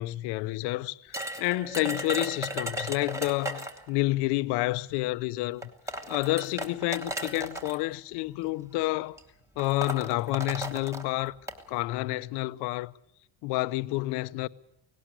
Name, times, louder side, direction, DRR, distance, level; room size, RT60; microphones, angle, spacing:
voice 1, 0.0-5.7 6.1-9.2 9.6-11.4 11.7-12.9 13.4-14.5, left 19 dB, 65° left, 0.7 m, -29 dB
sound 1, 1.1-3.9 5.0-5.1 5.6-7.8 8.7-8.9 9.2-9.3 9.6-11.6, right 1 dB, 5° right, 1.3 m, -35 dB
18.0 x 18.0 x 8.2 m
cardioid pair, 170°, 43 cm